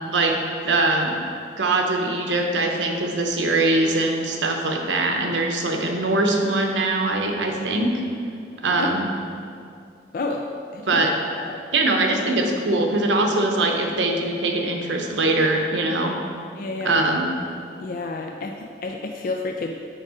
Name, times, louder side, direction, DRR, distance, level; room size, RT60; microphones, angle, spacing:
voice 1, 0.6-1.2 1.6-7.9 8.6-9.1 10.9-11.1 11.7-16.1 16.8-17.3, right 2 dB, 85° right, 2 dB, 0.8 m, -22 dB
voice 2, 10.1-10.5 10.7-11.0 11.4-11.5 16.0-16.2 16.5-17.0 17.8-19.7, left 3 dB, 50° left, 2 dB, 0.3 m, -30 dB
6.6 x 4.8 x 4.9 m, 2.4 s
head